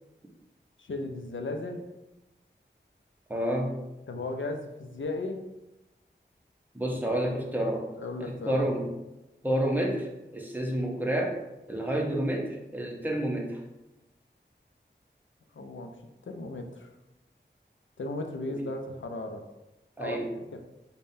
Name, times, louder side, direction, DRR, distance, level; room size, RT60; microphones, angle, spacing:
voice 1, 0.8-1.8 4.1-5.4 8.0-8.7 15.5-15.9 16.2-16.9 18.0-19.4 20.0-20.2 20.5-20.6, left 2 dB, 90° left, 4 dB, 0.4 m, -35 dB
voice 2, 3.3-3.7 6.7-7.9 8.2-8.9 9.4-11.4 11.7-13.6 18.5-18.6 20.0-20.3, right 1 dB, 10° right, 0 dB, 0.7 m, -29 dB
5.2 x 2.2 x 2.6 m, 0.98 s
wide cardioid pair, 50°, 19 cm